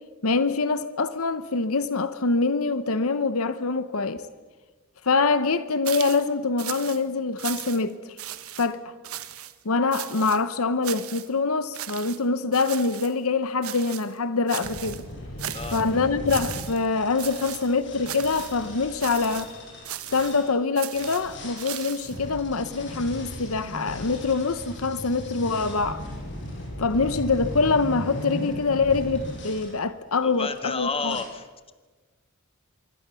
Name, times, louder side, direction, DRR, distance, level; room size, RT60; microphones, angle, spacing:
voice 1, 0.2-4.2 5.0-8.2 8.6-8.8 9.6-15.0 15.7-19.5 20.1-26.0 26.8-31.2, left 4 dB, 75° left, 0.9 m, -25 dB
sound 1, 5.8-6.3 6.6-7.0 7.4-7.9 8.2-8.7 9.0-9.5 9.9-10.4 10.8-11.3 11.7-12.2 12.5-13.1 13.6-14.1 14.5-15.0 15.4-15.9 16.3-16.9 17.2-17.7 18.0-18.6 19.0-19.5 19.8-20.4 20.8-22.2, right 12 dB, 90° right, 1.3 m, -37 dB
sound 2, 14.6-20.5 20.9-29.7 30.3-30.7 31.1-31.2, left 1 dB, 60° left, 7.3 m, -37 dB
voice 2, 30.2-31.7, left 4 dB, 25° left, 1.6 m, -31 dB
25.0 x 23.0 x 7.0 m
head